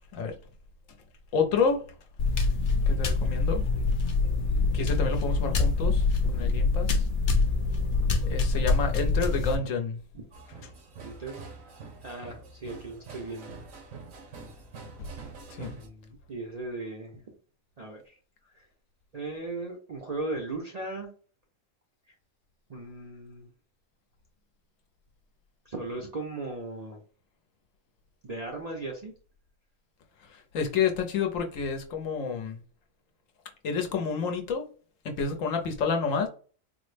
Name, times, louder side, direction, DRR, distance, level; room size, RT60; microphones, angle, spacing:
voice 1, 1.3-1.8 2.7-3.6 4.7-6.0 6.3-7.0 8.2-10.0 15.0-15.1 15.5-15.7 30.3-32.6 33.6-34.7 35.0-36.3, left 5 dB, 75° left, 1.0 m, -29 dB
sound 1, 2.2-9.6, left 3 dB, 55° left, 0.6 m, -25 dB
sound 2, 10.3-15.9, right 4 dB, 75° right, 1.2 m, -46 dB
voice 2, 11.0-11.3 12.0-13.6 15.7-17.2 17.8-18.2 18.5-18.7 19.1-21.1 22.1-22.2 22.7-23.5 25.7-27.0 28.2-29.1, right 2 dB, 50° right, 0.5 m, -37 dB
3.9 x 2.0 x 3.2 m
omnidirectional pair, 1.4 m